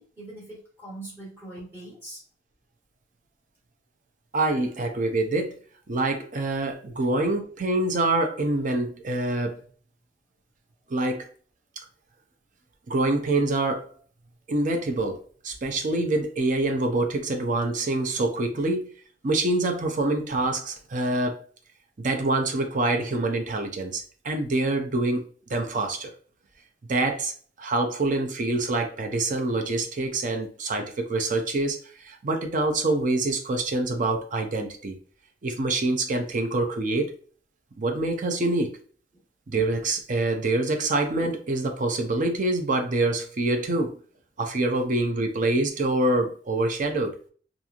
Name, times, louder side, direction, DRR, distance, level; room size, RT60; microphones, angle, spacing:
voice 1, 0.0-2.2 39.1-39.2, right 2 dB, 15° right, 1.3 m, -42 dB
voice 2, 4.3-5.6 5.9-9.6 10.9-11.3 12.9-13.9 14.5-18.9 19.2-21.4 22.0-26.1 26.9-27.3 27.6-35.0 35.4-37.1 37.8-38.8 39.5-44.0 44.4-47.2, right 2 dB, 45° right, 0.5 m, -26 dB
3.0 x 2.5 x 2.4 m
head